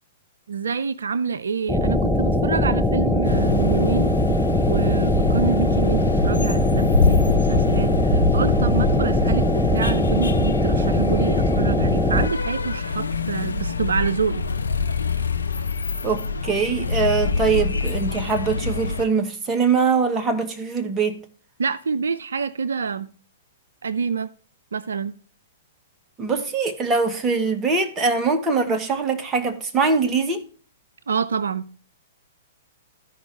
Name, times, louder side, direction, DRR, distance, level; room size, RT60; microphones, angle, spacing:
voice 1, 0.5-4.1 4.7-14.4 21.6-23.1 23.8-24.3 24.7-25.2 31.1-31.7, right 6 dB, 80° right, 0.4 m, -27 dB
sound 1, 1.7-12.3, left 1 dB, ahead, 0.7 m, -21 dB
sound 2, 3.2-19.0, left 4 dB, 85° left, 0.6 m, -25 dB
voice 2, 16.0-21.2 26.2-30.4, right 4 dB, 20° right, 1.2 m, -22 dB
14.0 x 5.3 x 3.2 m
hypercardioid pair, 120°, 0 cm